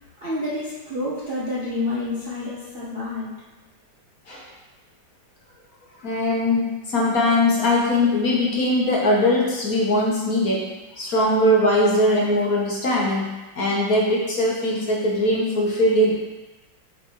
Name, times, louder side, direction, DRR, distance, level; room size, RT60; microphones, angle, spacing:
voice 1, 0.2-3.4, left 2 dB, 40° right, -8 dB, 0.9 m, -28 dB
voice 2, 6.0-16.1, left 1 dB, 50° left, -4 dB, 1.4 m, -21 dB
8.0 x 4.5 x 3.1 m, 1.1 s
omnidirectional pair, 2.2 m